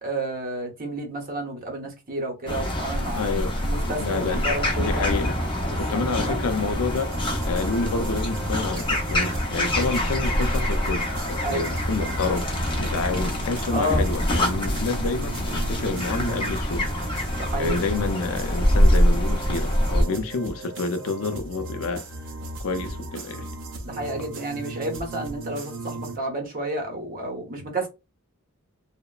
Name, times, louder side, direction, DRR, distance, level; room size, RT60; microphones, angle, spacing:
voice 1, 0.0-3.2 3.6-5.0 5.6-6.0 6.3-6.5 11.4-11.7 13.7-14.0 17.4-17.8 23.8-27.9, right 1 dB, 40° right, 0.8 m, -30 dB
sound 1, 2.5-20.0, equal, 25° left, 0.6 m, -25 dB
voice 2, 3.2-4.5 4.8-5.4 5.8-7.1 7.4-12.5 12.8-16.9 17.5-22.1 22.6-23.5, left 4 dB, 70° left, 0.4 m, -29 dB
sound 2, 7.0-26.2, right 2 dB, 60° right, 0.5 m, -37 dB
2.8 x 2.1 x 2.3 m
head